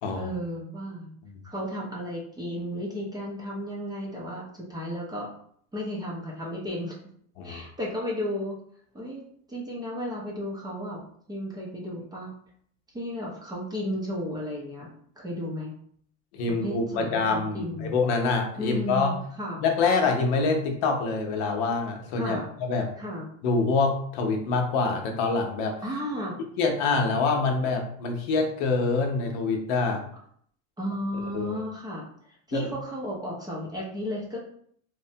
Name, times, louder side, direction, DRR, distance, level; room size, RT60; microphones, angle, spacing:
voice 1, 0.1-1.1 1.4-5.3 5.7-6.9 7.4-8.6 8.9-11.0 11.3-12.3 12.9-14.9 15.2-15.7 16.5-18.0 18.6-19.6 22.2-22.5 23.0-23.3 25.8-26.3 30.8-34.4, equal, 10° right, -4 dB, 0.6 m, -34 dB
voice 2, 16.3-19.1 19.6-22.9 23.4-25.8 26.6-30.0 31.3-31.6 32.5-32.7, left 4 dB, 60° left, 3 dB, 0.8 m, -26 dB
3.1 x 2.1 x 2.7 m, 0.62 s
supercardioid pair, 130°, 38 cm